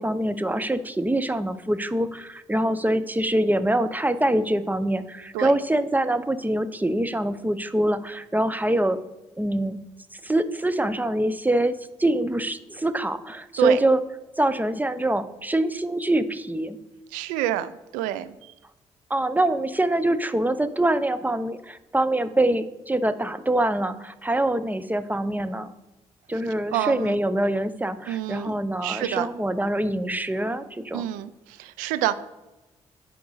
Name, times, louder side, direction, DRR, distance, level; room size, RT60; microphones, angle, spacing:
voice 1, 0.0-9.0 9.4-9.8 10.2-14.0 14.4-16.8 19.1-25.7 26.3-31.0, right 1 dB, 15° right, 12 dB, 0.8 m, -24 dB
voice 2, 17.1-18.5 26.7-27.2 28.1-28.6 28.8-29.3 30.9-32.1, right 13 dB, 85° right, 15 dB, 0.4 m, -28 dB
9.3 x 5.2 x 4.8 m, 1.0 s
hypercardioid pair, 45°, 13 cm